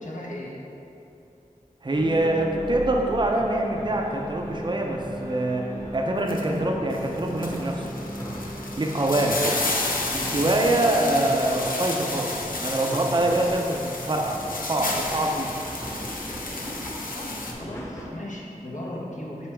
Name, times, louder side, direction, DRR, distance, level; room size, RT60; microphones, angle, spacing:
voice 1, 0.0-0.6 10.1-10.7 17.1-19.5, left 1 dB, 60° left, -4 dB, 1.1 m, -37 dB
voice 2, 1.8-7.9 8.8-9.6 10.3-12.3 12.6-15.5, right 1 dB, 35° right, 1 dB, 0.6 m, -24 dB
sound 1, 1.9-18.1, equal, 20° left, 1.1 m, -37 dB
sound 2, 6.3-6.4 6.9-17.5, left 2 dB, 80° left, 0.6 m, -32 dB
6.9 x 4.5 x 3.4 m, 2.8 s
wide cardioid pair, 40°, 14 cm